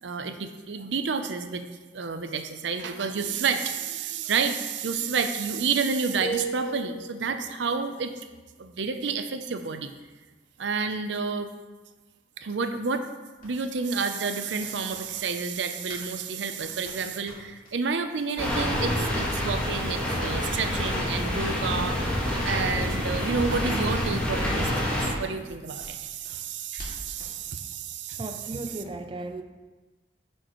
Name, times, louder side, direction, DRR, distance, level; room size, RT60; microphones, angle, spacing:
voice 1, 0.0-1.6 1.9-8.1 8.6-9.9 10.6-11.5 12.4-13.1 13.4-28.2 28.5-28.6, right 5 dB, 85° right, 8 dB, 0.6 m, -30 dB
sound 1, 6.2-7.3, right 3 dB, 50° right, 1.5 m, -33 dB
sound 2, 13.4-16.1 16.3-17.7 18.1-18.3 18.6-19.1 19.5-19.7 20.0-20.1 20.4-20.5 20.8-22.9 23.1-23.9 24.2-24.3 24.7-24.8 25.2-27.4, equal, 50° left, 2.2 m, -47 dB
sound 3, 18.4-25.1, left 1 dB, 5° left, 1.6 m, -27 dB
voice 2, 28.2-29.4, right 2 dB, 30° right, 6 dB, 0.4 m, -35 dB
9.3 x 6.5 x 3.1 m, 1.2 s
head